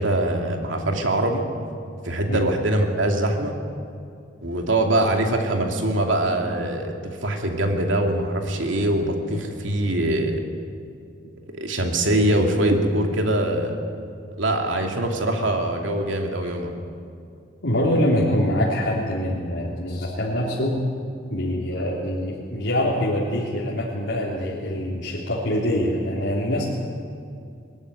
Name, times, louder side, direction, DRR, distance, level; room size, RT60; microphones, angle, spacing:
voice 1, 0.0-1.4 2.0-3.5 4.4-10.4 11.5-13.8 14.4-16.7, right 1 dB, 85° right, 3 dB, 2.7 m, -23 dB
voice 2, 17.6-20.8 21.3-26.6, left 1 dB, 80° left, -6 dB, 3.3 m, -24 dB
21.5 x 14.5 x 9.9 m, 2.4 s
head